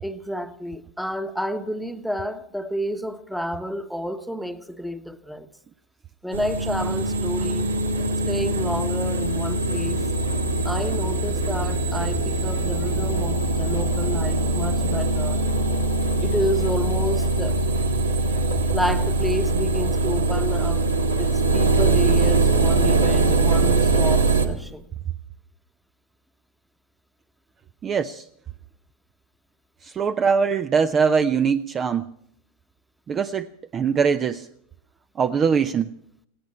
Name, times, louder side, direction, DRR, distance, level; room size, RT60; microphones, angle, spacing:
voice 1, 0.0-5.5 6.2-7.7 8.3-10.0 10.6-15.4 16.2-17.6 18.7-20.8 21.2-24.9, equal, ahead, 1.2 m, -30 dB
sound 1, 6.3-24.5, right 2 dB, 75° right, 1.9 m, -22 dB
voice 2, 27.8-28.3 29.8-32.1 33.1-33.5 33.7-34.5 35.2-35.9, right 6 dB, 25° right, 0.6 m, -22 dB
19.0 x 17.5 x 4.3 m
figure-of-eight pair, 90°, 0 cm